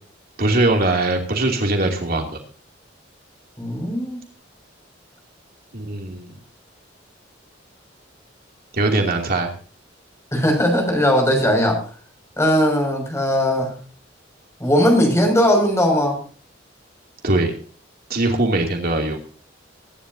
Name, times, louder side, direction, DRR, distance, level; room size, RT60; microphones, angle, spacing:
voice 1, 0.4-2.4 5.7-6.3 8.7-9.5 17.2-17.5 18.1-19.2, right 2 dB, 55° right, 2 dB, 2.8 m, -21 dB
voice 2, 3.6-4.2 10.3-11.8 12.4-13.7 14.6-16.2, equal, 15° left, 2 dB, 6.2 m, -18 dB
23.5 x 11.0 x 2.8 m, 0.41 s
head